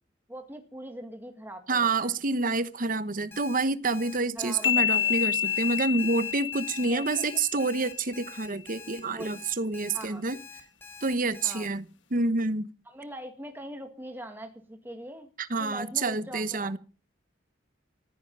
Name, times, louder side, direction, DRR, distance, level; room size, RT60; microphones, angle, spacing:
voice 1, 0.3-2.1 4.4-5.1 6.9-7.3 7.6-7.7 9.0-9.4 9.9-10.2 11.4-11.7 12.9-15.3 15.6-16.8, right 1 dB, 10° right, 2.0 m, -42 dB
voice 2, 1.7-10.4 11.0-11.9 12.1-12.7 15.4-16.8, right 3 dB, 45° right, 1.0 m, -28 dB
Alarm, 3.3-11.7, left 5 dB, 15° left, 4.1 m, -46 dB
sound 1, 4.6-8.2, left 9 dB, 75° left, 1.4 m, -29 dB
15.0 x 14.5 x 5.4 m
head